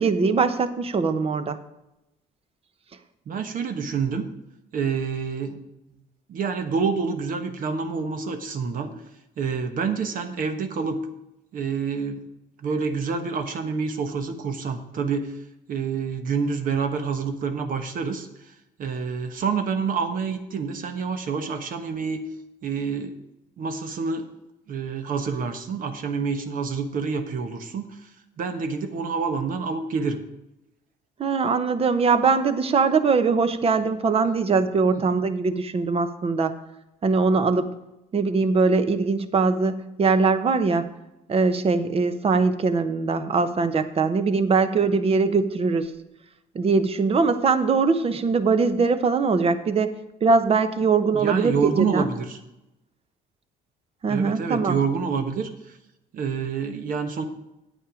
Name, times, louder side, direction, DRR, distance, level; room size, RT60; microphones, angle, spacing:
voice 1, 0.0-1.6 31.2-36.5 37.0-37.8 38.1-40.9 41.3-45.9 46.5-49.9 50.2-52.1 54.0-54.8, right 4 dB, 35° right, 11 dB, 0.9 m, -21 dB
voice 2, 3.3-4.2 4.7-5.6 6.3-8.9 9.4-11.0 11.5-12.2 12.6-15.3 15.7-18.5 18.8-22.2 22.6-23.1 23.6-24.3 24.7-28.1 28.4-30.2 51.1-52.4 54.1-55.8 56.1-57.2, right 5 dB, 55° right, 7 dB, 1.2 m, -27 dB
8.9 x 8.5 x 5.0 m, 0.91 s
cardioid pair, 110°, 17 cm